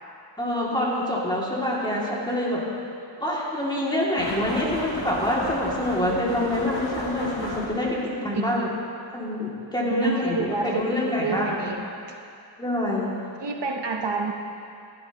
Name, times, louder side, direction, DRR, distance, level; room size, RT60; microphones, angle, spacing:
voice 1, 0.4-2.6 3.2-8.7 9.1-11.6 12.6-13.1, left 1 dB, 10° left, -6 dB, 2.5 m, -26 dB
sound 1, 4.2-8.0, left 1 dB, 60° left, 2.6 m, -34 dB
voice 2, 8.3-8.7 9.9-11.8 13.4-14.3, right 4 dB, 75° right, 3 dB, 0.9 m, -29 dB
15.5 x 12.0 x 3.0 m, 2.5 s
wide cardioid pair, 80°, 43 cm